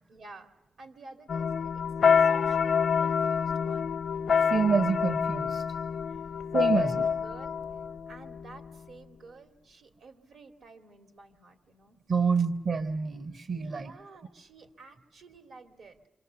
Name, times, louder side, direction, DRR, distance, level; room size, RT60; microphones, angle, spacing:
voice 1, 0.1-0.5 0.8-3.9 6.1-6.3 6.7-7.6 8.1-12.0 12.4-12.5 13.8-16.0, right 3 dB, 85° right, 6 dB, 2.4 m, -51 dB
sound 1, 1.3-8.8, left 6 dB, 80° left, 0.9 m, -27 dB
voice 2, 4.5-5.6 6.5-7.0 12.1-13.9, right 5 dB, 65° right, 9 dB, 1.0 m, -27 dB
28.0 x 25.5 x 6.9 m, 0.92 s
cardioid pair, 80°, 0 cm